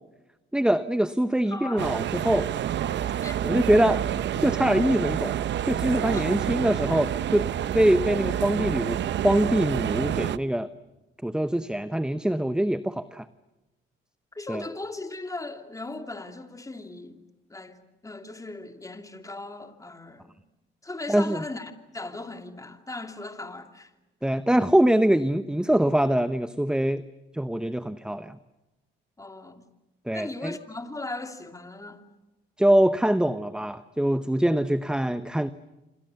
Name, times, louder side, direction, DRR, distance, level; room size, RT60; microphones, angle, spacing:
voice 1, 0.5-2.5 3.4-4.0 4.3-7.5 7.7-10.7 11.2-13.3 14.5-14.6 21.1-21.4 24.2-27.0 27.3-28.4 30.1-30.6 32.6-35.5, right 1 dB, 5° right, 0.8 m, -23 dB
voice 2, 1.5-1.9 3.2-3.4 6.1-6.4 14.3-17.2 17.5-20.3 20.8-23.9 29.2-29.6 30.1-32.1, left 2 dB, 15° left, 2.8 m, -38 dB
sound 1, 1.8-10.4, right 11 dB, 65° right, 0.9 m, -28 dB
28.0 x 26.0 x 7.0 m
cardioid pair, 90°, 20 cm